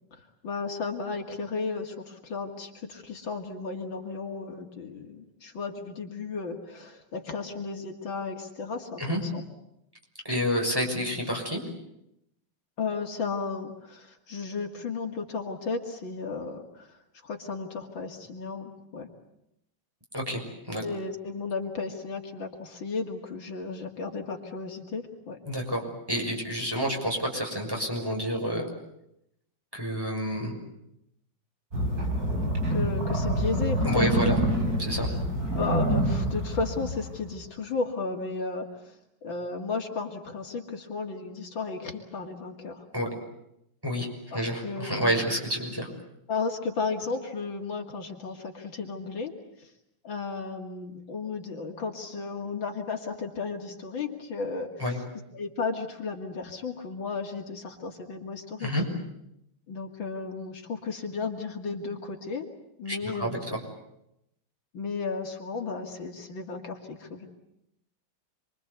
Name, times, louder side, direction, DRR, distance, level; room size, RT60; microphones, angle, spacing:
voice 1, 0.1-9.4 11.0-11.1 12.8-19.1 20.8-25.4 32.7-34.1 34.5-34.8 35.0-35.1 35.5-38.9 39.2-42.9 44.3-45.4 46.3-49.3 49.6-49.7 50.0-55.0 55.3-58.7 59.7-62.5 62.8-63.4 64.7-67.3, left 4 dB, 70° left, 4 dB, 3.1 m, -34 dB
voice 2, 10.2-11.6 20.1-20.4 20.7-20.8 25.5-25.8 26.1-28.7 29.7-30.6 33.8-34.4 34.8-35.1 42.9-43.1 43.8-45.9 54.8-55.0 58.6-58.8 62.9-63.6, equal, 10° right, 0 dB, 6.3 m, -29 dB
sound 1, 31.7-37.4, right 1 dB, 45° right, 6.3 m, -27 dB
27.5 x 23.5 x 8.3 m, 0.81 s
omnidirectional pair, 2.2 m